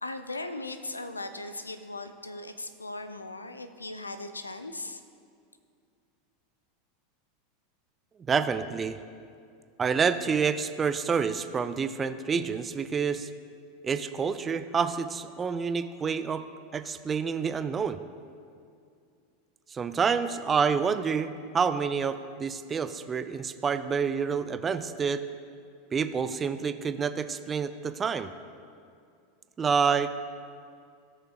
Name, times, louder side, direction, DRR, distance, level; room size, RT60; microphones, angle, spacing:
voice 1, 0.0-5.0, left 2 dB, 85° left, 10 dB, 0.4 m, -38 dB
voice 2, 8.3-9.0 9.8-13.3 13.8-16.4 16.7-18.0 19.7-25.2 25.9-28.3 29.6-30.1, right 6 dB, 20° right, 11 dB, 0.4 m, -28 dB
18.0 x 6.5 x 2.3 m, 2.4 s
figure-of-eight pair, 85°, 0 cm